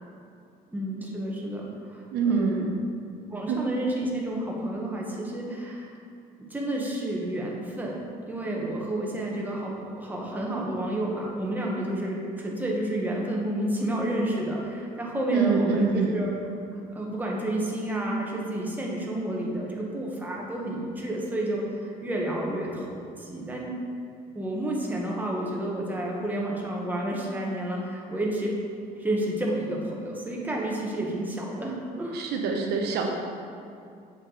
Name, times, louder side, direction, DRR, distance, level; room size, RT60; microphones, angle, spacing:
voice 1, 0.7-2.7 3.3-5.9 6.5-8.0 8.3-16.3 16.9-23.7 24.3-28.5 29.0-32.2, right 1 dB, 10° right, -3 dB, 1.2 m, -30 dB
voice 2, 2.1-2.8 3.5-3.6 15.3-16.2 32.1-33.1, right 5 dB, 75° right, 2 dB, 0.8 m, -25 dB
7.5 x 4.8 x 3.9 m, 2.5 s
cardioid pair, 110°, 17 cm